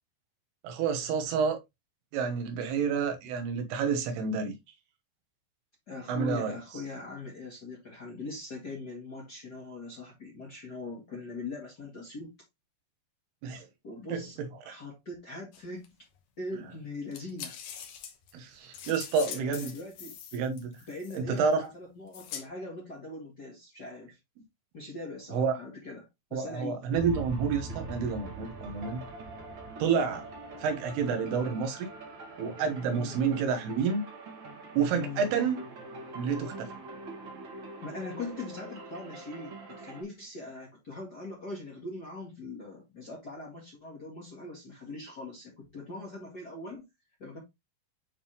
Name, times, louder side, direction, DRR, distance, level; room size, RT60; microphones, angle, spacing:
voice 1, 0.6-1.6 2.1-4.5 6.1-6.6 13.4-13.7 14.1-14.2 14.7-14.8 18.3-19.7 20.3-20.7 21.1-21.6 25.3-25.6 26.3-29.0 29.8-30.3 30.6-31.9 32.4-34.0 34.7-35.6 36.2-36.8, right 6 dB, 90° right, 3.2 m, -29 dB
voice 2, 5.9-12.3 13.8-14.4 14.6-15.9 16.4-17.6 19.2-20.1 20.9-24.2 24.7-26.8 32.9-33.2 34.9-35.3 37.8-46.8 47.2-47.4, left 3 dB, 45° left, 1.4 m, -41 dB
sound 1, 15.5-15.9 17.1-21.5 22.1-22.5, left 8 dB, 70° left, 1.6 m, -43 dB
sound 2, 26.9-40.0, right 2 dB, 55° right, 1.4 m, -43 dB
9.3 x 3.5 x 2.9 m
omnidirectional pair, 4.5 m